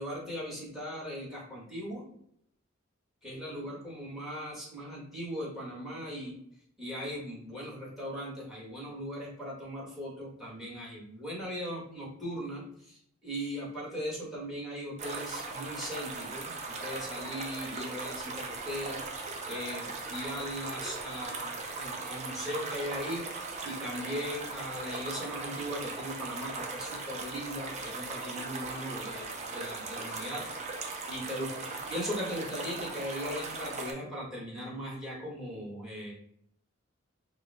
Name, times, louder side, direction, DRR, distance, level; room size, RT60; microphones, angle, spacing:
voice 1, 0.0-2.0 3.2-6.4 6.8-30.4 31.1-36.1, equal, ahead, -6 dB, 1.7 m, -39 dB
sound 1, 15.0-33.9, right 3 dB, 35° right, 0.6 m, -39 dB
4.8 x 2.4 x 3.6 m, 0.71 s
head